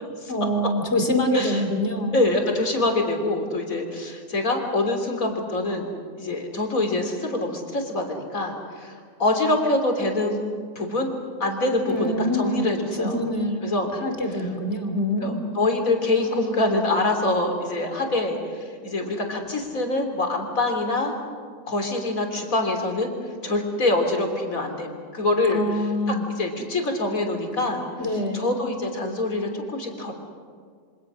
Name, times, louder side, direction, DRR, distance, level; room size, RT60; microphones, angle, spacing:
voice 1, 0.3-2.2 11.9-12.6 12.9-15.4 25.5-26.2 28.0-28.4, left 1 dB, 50° left, 4 dB, 3.1 m, -25 dB
voice 2, 2.1-5.9 6.2-8.9 9.2-10.4 10.8-11.1 11.4-13.2 13.6-13.9 15.2-21.1 21.7-23.1 23.4-25.6 26.1-27.8 28.3-30.1, left 2 dB, 75° left, 4 dB, 3.8 m, -25 dB
27.5 x 25.5 x 6.3 m, 2.1 s
omnidirectional pair, 1.5 m